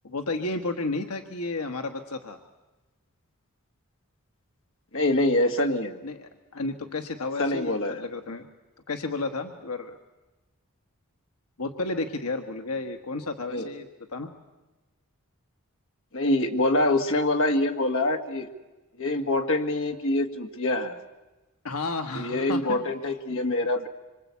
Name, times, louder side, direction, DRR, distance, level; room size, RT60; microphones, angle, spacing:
voice 1, 0.0-2.4 6.0-8.5 8.9-10.0 11.6-14.3 21.6-22.8, left 3 dB, 85° left, 5 dB, 1.4 m, -32 dB
voice 2, 4.9-6.0 7.4-8.0 13.5-13.7 16.1-18.5 19.0-21.0 22.2-23.9, left 1 dB, 60° left, 4 dB, 2.0 m, -25 dB
26.0 x 25.0 x 8.4 m, 1.1 s
head